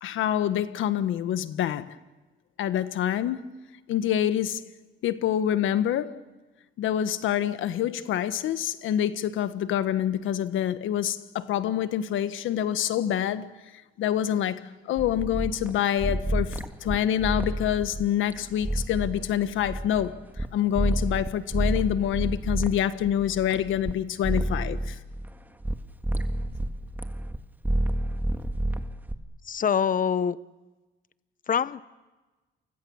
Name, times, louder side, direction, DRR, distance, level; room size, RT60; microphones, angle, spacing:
voice 1, 0.0-1.9 2.6-3.5 3.9-4.6 5.0-6.2 6.8-13.5 14.0-25.0, left 10 dB, 85° left, 1.4 m, -26 dB
sound 1, 15.0-20.5 20.8-23.9 24.2-25.8 26.0-27.4 27.6-29.2, right 1 dB, 10° right, 1.7 m, -29 dB
voice 2, 29.4-30.4 31.5-31.8, left 7 dB, 45° left, 1.0 m, -24 dB
30.0 x 24.5 x 7.2 m
cardioid pair, 90°, 20 cm